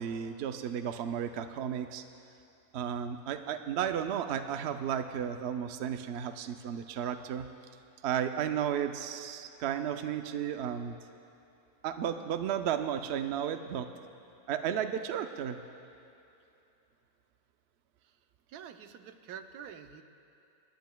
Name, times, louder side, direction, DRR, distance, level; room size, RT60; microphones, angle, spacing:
voice 1, 0.0-2.0 2.7-7.5 8.0-11.0 11.8-13.9 14.5-15.6, right 9 dB, 65° right, 8 dB, 0.6 m, -33 dB
voice 2, 18.5-20.0, right 8 dB, 85° right, 8 dB, 1.2 m, -47 dB
28.0 x 10.5 x 2.2 m, 2.7 s
omnidirectional pair, 1.6 m